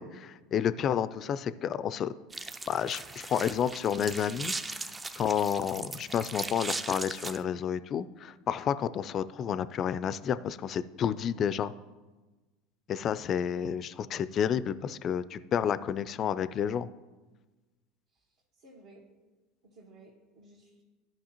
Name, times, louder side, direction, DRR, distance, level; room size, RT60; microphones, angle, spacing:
voice 1, 0.0-2.1 2.7-4.9 5.2-11.7 12.9-16.9, left 8 dB, 40° left, 15 dB, 0.4 m, -30 dB
sound 1, 2.3-7.4, right 3 dB, 15° right, 0.5 m, -38 dB
voice 2, 18.6-19.0 19.6-20.8, right 2 dB, 65° right, -4 dB, 1.6 m, -55 dB
13.5 x 5.4 x 2.9 m, 1.2 s
hypercardioid pair, 80°, 0 cm